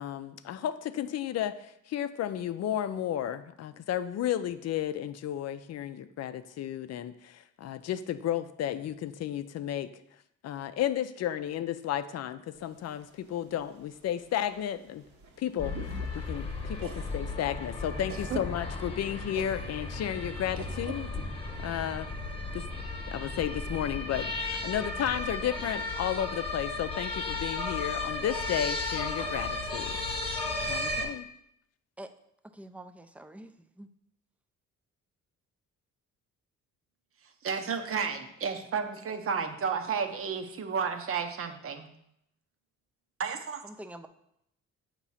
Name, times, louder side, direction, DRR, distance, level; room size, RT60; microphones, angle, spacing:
voice 1, 0.0-9.9 10.4-15.1 15.4-21.1 21.6-22.1 22.5-22.7 23.1-29.9 30.7-31.3, left 10 dB, 55° left, 12 dB, 0.5 m, -33 dB
sound 1, 12.6-18.0, right 3 dB, 70° right, 1.1 m, -51 dB
sound 2, 15.6-31.1, left 2 dB, 20° left, 1.1 m, -35 dB
voice 2, 32.4-33.9 43.6-44.1, right 1 dB, 5° right, 9 dB, 0.4 m, -46 dB
voice 3, 37.4-41.9 43.2-43.6, right 6 dB, 45° right, 7 dB, 0.8 m, -32 dB
7.1 x 3.0 x 5.5 m, 0.76 s
cardioid pair, 90°, 30 cm